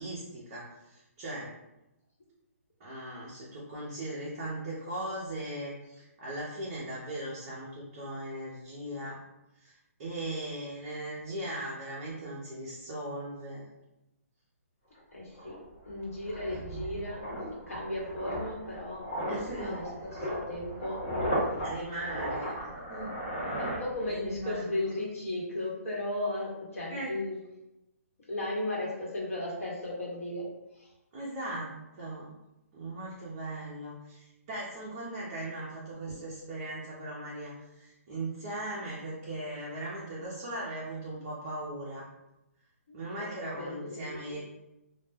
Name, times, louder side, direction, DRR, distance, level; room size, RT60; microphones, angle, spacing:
voice 1, 0.0-1.5 2.8-9.2 9.6-13.6 16.5-16.8 19.3-19.8 21.6-23.2 24.1-24.7 26.9-27.1 31.1-32.3 32.7-42.1 42.9-44.4, right 1 dB, 25° right, -7 dB, 0.5 m, -39 dB
sound 1, 15.0-15.1 15.4-24.4 24.7-25.0, equal, 35° left, 0.9 m, -36 dB
voice 2, 15.1-15.6 15.9-17.3 17.7-19.1 19.6-21.0 23.6-27.4 28.3-30.5 30.7-30.9 42.9-44.4, left 1 dB, 65° left, -4 dB, 1.0 m, -36 dB
2.2 x 2.1 x 3.2 m, 0.93 s
hypercardioid pair, 170°, 8 cm